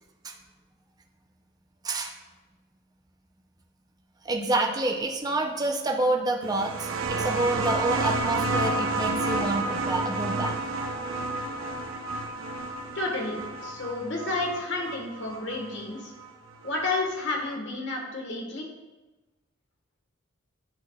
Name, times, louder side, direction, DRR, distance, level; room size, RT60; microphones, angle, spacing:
voice 1, 4.2-10.5, right 2 dB, 20° right, 1 dB, 0.6 m, -28 dB
sound 1, 6.4-15.7 16.8-16.9, right 2 dB, 85° right, 0.8 m, -30 dB
voice 2, 12.9-16.1 16.6-18.7, left 2 dB, 60° left, 0 dB, 1.4 m, -31 dB
10.5 x 4.5 x 2.3 m, 1.1 s
head